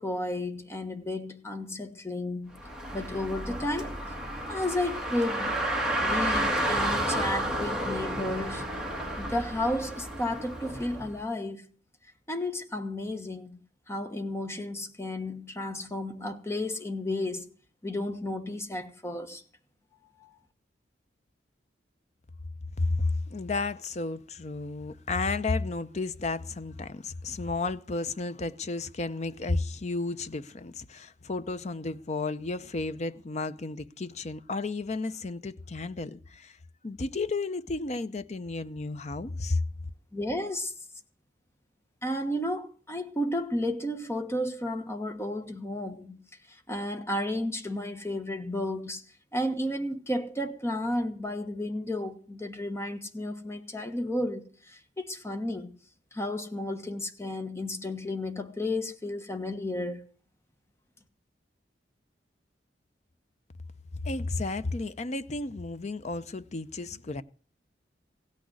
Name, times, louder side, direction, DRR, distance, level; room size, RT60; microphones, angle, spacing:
voice 1, 0.0-2.5 2.9-3.9 4.5-5.6 6.0-8.6 9.2-11.7 12.3-13.6 13.9-17.5 17.8-19.4 20.2-20.3 40.1-40.7 42.0-46.2 46.7-49.0 49.3-55.7 56.1-60.1, left 1 dB, 15° left, 1.2 m, -32 dB
Car, 2.5-11.1, right 1 dB, 5° right, 2.0 m, -31 dB
voice 2, 22.8-36.6 36.8-39.6 64.0-67.2, left 3 dB, 40° left, 0.6 m, -32 dB
16.5 x 6.3 x 9.6 m
head